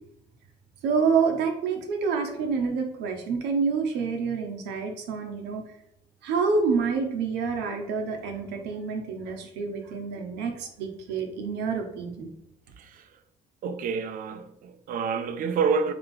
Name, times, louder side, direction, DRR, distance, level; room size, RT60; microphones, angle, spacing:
voice 1, 0.8-5.6 6.2-12.3, right 5 dB, 85° right, 0.8 m, -27 dB
voice 2, 12.8-13.2 13.6-15.9, right 5 dB, 55° right, 0.5 m, -28 dB
3.3 x 2.8 x 3.7 m
cardioid pair, 110°, 17 cm